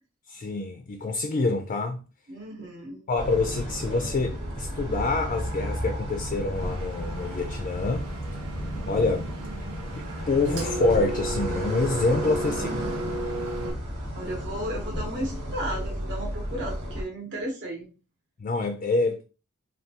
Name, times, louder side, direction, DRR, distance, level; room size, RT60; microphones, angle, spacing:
voice 1, 0.3-2.0 3.1-8.1 8.9-9.3 9.9-12.8 18.4-19.2, left 3 dB, 35° left, 0.3 m, -26 dB
voice 2, 2.3-3.0 9.4-9.8 12.5-13.2 14.1-17.9, right 1 dB, 55° right, 0.9 m, -35 dB
sound 1, 3.2-17.0, equal, 25° right, 1.0 m, -33 dB
Engine, 6.5-13.7, right 2 dB, 80° right, 0.7 m, -35 dB
3.4 x 2.3 x 2.7 m
head